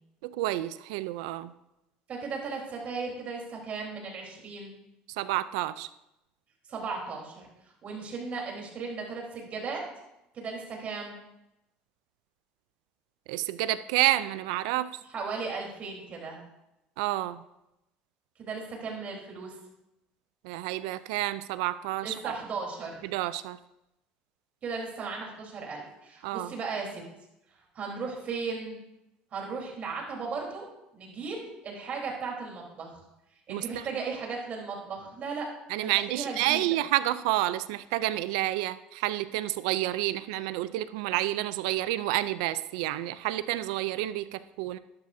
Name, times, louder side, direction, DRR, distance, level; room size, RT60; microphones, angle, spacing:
voice 1, 0.2-1.5 5.1-5.9 13.3-14.9 17.0-17.4 20.4-22.3 23.0-23.6 26.2-26.5 33.5-33.9 35.7-44.8, right 15 dB, 90° right, 15 dB, 0.5 m, -29 dB
voice 2, 2.1-4.8 6.7-9.8 10.3-11.2 15.1-16.4 18.4-19.6 22.0-23.1 24.6-27.0 27.5-28.8 29.3-30.7 30.9-33.0 33.5-35.5 35.8-36.6, right 4 dB, 45° right, -1 dB, 3.8 m, -36 dB
12.5 x 11.5 x 2.7 m, 0.89 s
supercardioid pair, 105°, 3 cm